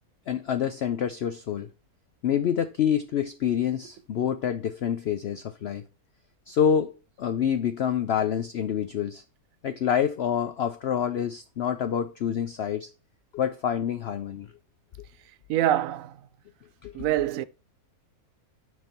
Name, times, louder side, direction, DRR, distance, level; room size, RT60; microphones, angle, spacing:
voice 1, 0.3-1.7 2.2-5.8 6.5-9.2 9.6-12.9 13.3-14.5 16.8-17.0, left 8 dB, 65° left, 0.6 m, -27 dB
voice 2, 15.5-16.2 16.9-17.5, right 12 dB, 70° right, 0.9 m, -25 dB
6.5 x 5.3 x 4.3 m
omnidirectional pair, 1.6 m